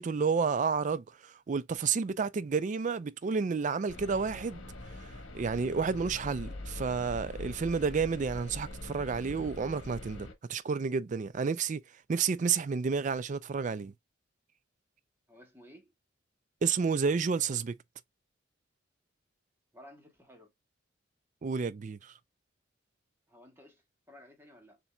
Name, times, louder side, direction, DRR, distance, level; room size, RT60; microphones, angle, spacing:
voice 1, 0.0-4.6 5.3-11.8 12.1-13.9 16.6-17.8 21.4-22.1, right 5 dB, 40° right, 0.3 m, -30 dB
sound 1, 3.9-10.3, left 2 dB, 85° left, 1.2 m, -43 dB
voice 2, 15.3-15.9 19.7-20.5 23.3-24.8, left 1 dB, 10° right, 1.4 m, -55 dB
7.0 x 2.8 x 2.3 m
head